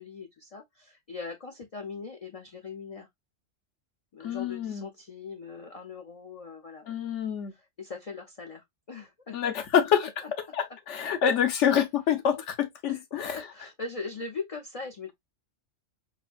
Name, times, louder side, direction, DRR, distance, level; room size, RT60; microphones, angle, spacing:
voice 1, 0.0-3.1 4.1-6.8 7.8-9.4 10.2-10.3 12.9-15.1, left 4 dB, 55° left, 0.4 m, -40 dB
voice 2, 4.2-4.9 6.9-7.5 9.3-10.1 10.5-13.4, left 8 dB, 70° left, 1.1 m, -26 dB
4.1 x 2.6 x 2.2 m
omnidirectional pair, 1.3 m